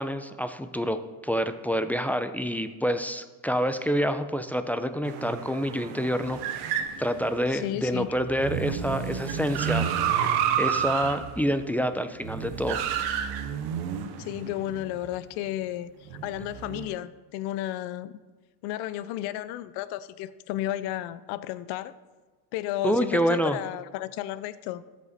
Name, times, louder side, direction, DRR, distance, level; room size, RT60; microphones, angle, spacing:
voice 1, 0.0-6.4 6.7-9.9 10.6-12.8 22.8-23.6, equal, 5° left, 9 dB, 0.5 m, -27 dB
sound 1, 5.0-15.0 16.1-16.9, right 8 dB, 75° right, 0.9 m, -30 dB
voice 2, 7.5-8.2 14.2-15.9 16.2-18.1 18.6-21.9 22.5-24.8, left 13 dB, 75° left, 16 dB, 0.6 m, -33 dB
12.5 x 5.3 x 4.1 m, 1.3 s
supercardioid pair, 85°, 39 cm